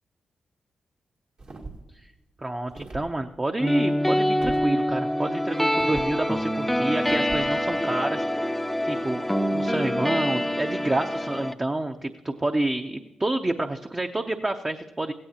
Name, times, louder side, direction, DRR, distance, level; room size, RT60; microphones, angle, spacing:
sound 1, 1.4-1.9 2.7-3.1 4.4-4.7 5.8-6.1 7.1-7.5, right 3 dB, 60° right, 2.1 m, -39 dB
voice 1, 2.4-9.3 9.5-15.1, right 2 dB, 25° right, 5 dB, 0.7 m, -28 dB
sound 2, 3.6-11.5, equal, 5° left, 0.6 m, -25 dB
16.0 x 15.0 x 2.9 m, 1.1 s
supercardioid pair, 50°, 2 cm